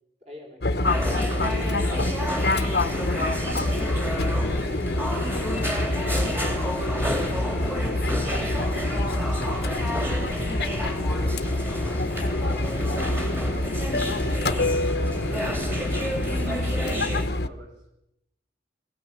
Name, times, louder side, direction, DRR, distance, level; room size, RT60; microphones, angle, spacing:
voice 1, 0.2-2.1 2.5-8.1, left 1 dB, 35° right, 0 dB, 5.4 m, -46 dB
Fixed-wing aircraft airplane, 0.6-17.5, left 2 dB, 60° left, 0.9 m, -27 dB
sound 1, 0.8-17.3, equal, 10° right, 2.7 m, -30 dB
voice 2, 13.5-17.7, right 1 dB, 85° right, 2 dB, 5.9 m, -43 dB
23.0 x 17.0 x 7.2 m, 0.84 s
head